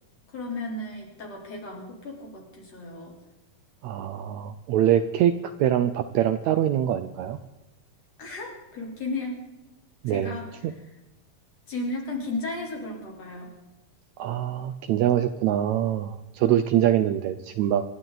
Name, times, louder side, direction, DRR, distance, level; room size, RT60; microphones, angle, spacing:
voice 1, 0.3-3.1 8.2-9.4 10.1-10.8 11.7-13.5, left 2 dB, 50° left, -1 dB, 4.6 m, -34 dB
voice 2, 3.8-5.3 5.6-7.4 10.0-10.4 10.6-10.7 14.2-17.8, right 11 dB, 75° right, 10 dB, 1.8 m, -24 dB
27.0 x 12.0 x 3.9 m, 1.0 s
omnidirectional pair, 3.7 m